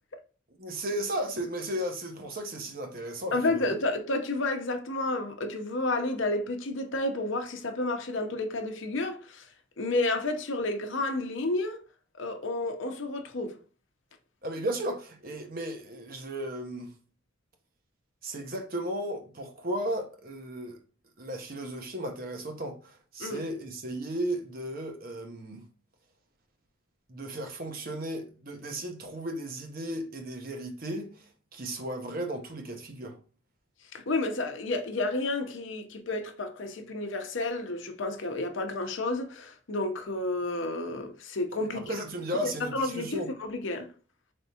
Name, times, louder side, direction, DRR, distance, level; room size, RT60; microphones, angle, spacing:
voice 1, 0.6-3.8 14.4-16.9 18.2-20.8 21.2-25.6 27.1-33.2 41.7-43.3, right 1 dB, 45° right, 0.8 m, -35 dB
voice 2, 3.3-9.5 9.8-11.8 12.2-13.6 23.2-23.4 33.9-41.9 42.4-43.9, left 2 dB, 70° left, 0.7 m, -31 dB
4.5 x 3.5 x 2.8 m
head